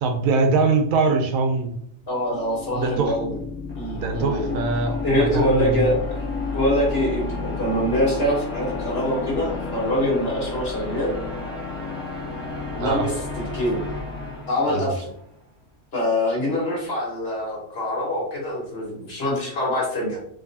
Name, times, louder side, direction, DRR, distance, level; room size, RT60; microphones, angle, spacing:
voice 1, 0.0-1.7 2.7-3.1 3.9-5.9 12.8-13.0 14.7-14.9, right 4 dB, 80° right, 6 dB, 1.0 m, -22 dB
voice 2, 2.1-3.4 3.8-4.6 5.0-6.0 6.5-11.1 12.7-13.1 13.5-13.8 14.5-15.1 15.9-20.2, left 1 dB, 45° left, -4 dB, 1.8 m, -24 dB
sound 1, 2.1-15.2, left 3 dB, 20° left, 1.1 m, -31 dB
4.5 x 3.0 x 2.7 m, 0.67 s
omnidirectional pair, 1.4 m